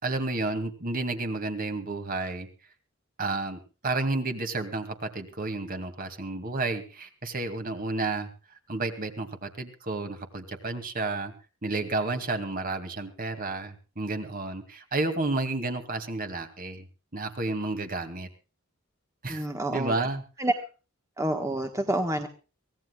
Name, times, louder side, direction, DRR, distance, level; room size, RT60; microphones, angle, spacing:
voice 1, 0.0-2.5 3.2-8.3 8.7-11.3 11.6-16.9 17.1-18.3 19.2-19.4 19.7-20.2, right 2 dB, 45° right, 7 dB, 2.4 m, -31 dB
voice 2, 19.3-19.9 20.4-20.5 21.2-22.3, right 1 dB, 15° right, 5 dB, 1.4 m, -28 dB
24.5 x 17.0 x 2.4 m, 0.34 s
head